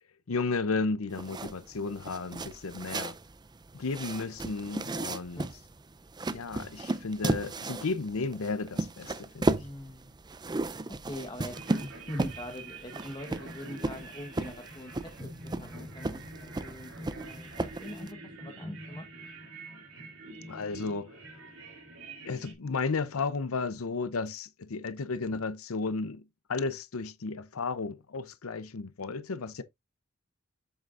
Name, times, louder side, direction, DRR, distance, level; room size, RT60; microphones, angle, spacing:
voice 1, 0.3-3.1 3.7-5.4 6.3-9.6 20.5-21.1 22.2-29.6, left 4 dB, 75° left, 0.7 m, -33 dB
sound 1, 1.1-18.1, right 2 dB, 20° right, 0.5 m, -35 dB
voice 2, 9.6-10.2 10.9-19.0, left 1 dB, 20° left, 1.2 m, -43 dB
sound 2, 11.5-22.5, right 2 dB, 70° right, 2.6 m, -45 dB
7.9 x 7.5 x 2.5 m
head